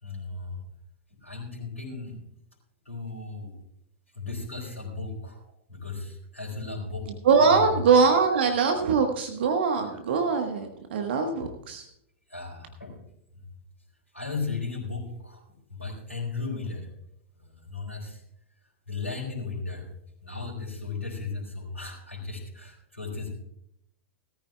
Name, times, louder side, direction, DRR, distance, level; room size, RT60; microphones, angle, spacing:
voice 1, 0.0-0.6 1.2-2.2 2.9-3.5 4.1-5.4 5.7-7.1 7.4-7.8 12.3-13.0 14.1-15.4 15.7-16.9 17.7-18.2 18.9-19.9 20.2-23.3, left 4 dB, 80° left, -3 dB, 3.7 m, -35 dB
voice 2, 7.1-11.9, right 5 dB, 55° right, 5 dB, 1.3 m, -22 dB
18.0 x 14.0 x 2.3 m, 0.75 s
figure-of-eight pair, 100°, 7 cm